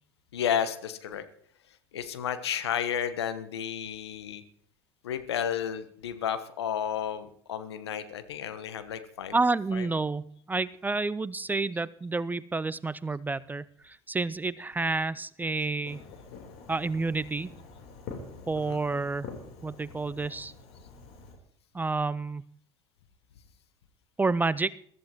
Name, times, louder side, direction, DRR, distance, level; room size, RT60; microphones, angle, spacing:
voice 1, 0.3-1.2 1.9-4.4 5.0-9.4 9.7-9.9 18.5-18.8, left 9 dB, 75° left, 11 dB, 1.2 m, -32 dB
voice 2, 9.3-16.0 16.7-17.5 18.5-19.3 19.6-20.5 21.7-22.4 24.2-24.8, right 3 dB, 15° right, 20 dB, 0.4 m, -29 dB
Fireworks, 15.8-21.3, left 4 dB, 60° left, 3.7 m, -46 dB
22.5 x 14.0 x 3.0 m, 0.62 s
figure-of-eight pair, 70°, 14 cm